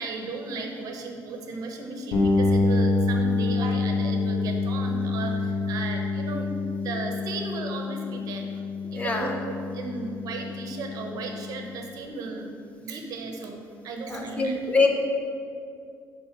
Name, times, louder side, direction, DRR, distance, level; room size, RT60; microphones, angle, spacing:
voice 1, 0.0-6.5 6.8-8.5 8.9-14.6, right 3 dB, 60° right, 3 dB, 1.1 m, -35 dB
sound 1, 2.1-11.8, left 3 dB, 65° left, 1.6 m, -27 dB
voice 2, 8.9-9.3 14.1-14.9, left 3 dB, 20° left, 2 dB, 0.8 m, -24 dB
11.0 x 4.0 x 6.0 m, 2.4 s
cardioid pair, 165°, 7 cm